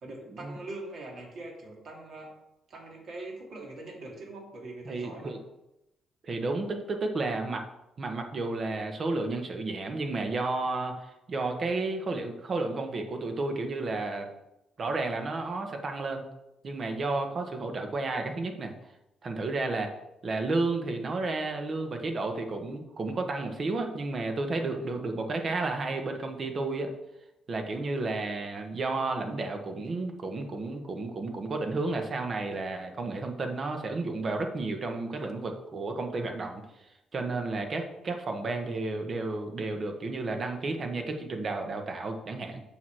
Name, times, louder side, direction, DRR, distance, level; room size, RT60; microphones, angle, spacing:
voice 1, 0.0-2.3 2.7-5.4 24.6-24.9, right 2 dB, 60° right, -2 dB, 2.9 m, -42 dB
voice 2, 4.8-5.4 6.2-7.7 8.0-14.3 14.8-16.2 16.6-18.7 19.2-19.9 20.2-26.9 27.5-36.6 37.1-42.6, right 3 dB, 45° right, 4 dB, 1.3 m, -32 dB
7.1 x 6.2 x 4.9 m, 0.91 s
cardioid pair, 90°, 0 cm